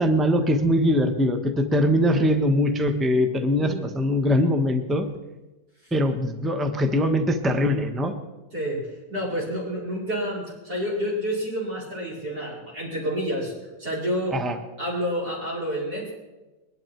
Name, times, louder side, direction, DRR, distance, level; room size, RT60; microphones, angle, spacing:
voice 1, 0.0-5.1 5.9-8.1 14.3-14.6, equal, ahead, 6 dB, 0.8 m, -22 dB
voice 2, 9.1-13.5 13.8-14.4 14.8-16.1, equal, 60° right, -7 dB, 5.3 m, -29 dB
22.5 x 11.0 x 4.6 m, 1.1 s
omnidirectional pair, 1.9 m